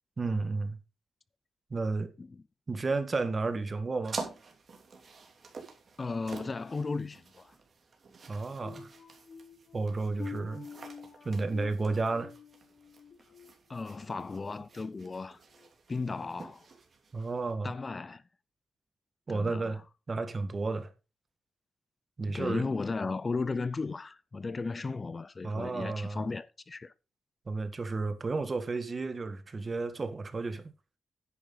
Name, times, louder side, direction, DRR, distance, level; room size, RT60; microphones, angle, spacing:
voice 1, 0.2-0.8 1.7-2.1 2.7-4.2 8.3-8.9 9.7-10.7 11.2-12.3 17.1-17.8 19.3-19.8 20.1-20.9 22.2-22.7 25.4-26.3 27.5-30.7, right 3 dB, 40° right, 1.6 m, -32 dB
sound 1, 4.0-17.5, right 4 dB, 55° right, 3.0 m, -48 dB
voice 2, 6.0-7.5 13.7-15.4 15.9-16.7 17.6-18.2 19.3-19.8 22.3-26.9, left 4 dB, 35° left, 0.5 m, -35 dB
sound 2, 8.6-14.3 14.7-15.0 15.5-15.7, left 6 dB, 60° left, 1.5 m, -48 dB
10.0 x 8.9 x 4.0 m
cardioid pair, 85°, 0 cm